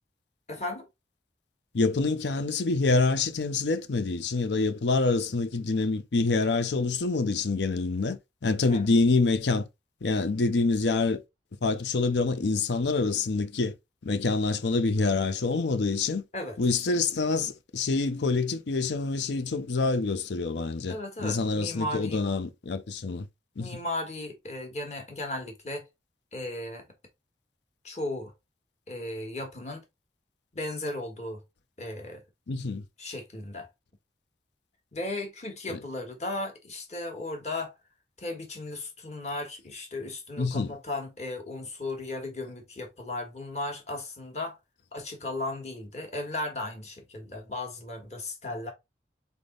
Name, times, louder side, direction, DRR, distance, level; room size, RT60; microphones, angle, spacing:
voice 1, 0.5-0.9 8.7-8.8 16.3-16.6 20.9-22.2 23.6-25.8 26.3-26.9 27.8-28.3 28.9-29.8 30.5-31.4 31.8-32.2 33.0-33.7 34.9-37.8 38.2-44.6 44.9-48.7, left 2 dB, 40° left, 1.5 m, -36 dB
voice 2, 1.7-9.6 10.0-11.2 11.6-13.7 14.0-16.2 16.6-23.3 23.6-23.7 32.5-32.8 35.7-35.8 40.4-40.7, left 3 dB, 75° left, 0.6 m, -26 dB
4.0 x 3.5 x 3.8 m
head